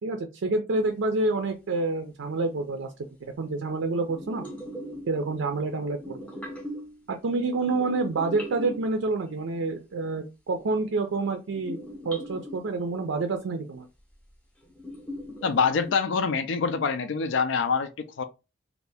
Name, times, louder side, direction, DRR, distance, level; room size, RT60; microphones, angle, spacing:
voice 1, 0.0-4.5 5.1-6.2 7.1-11.8 12.0-13.9, right 3 dB, 70° right, 0.4 m, -28 dB
sound 1, 4.1-5.6 5.9-7.0 7.6-9.3 11.5-12.7 14.1-14.2 14.6-16.0, equal, 10° left, 0.7 m, -39 dB
voice 2, 15.4-18.2, left 5 dB, 65° left, 0.4 m, -25 dB
2.7 x 2.4 x 3.3 m
head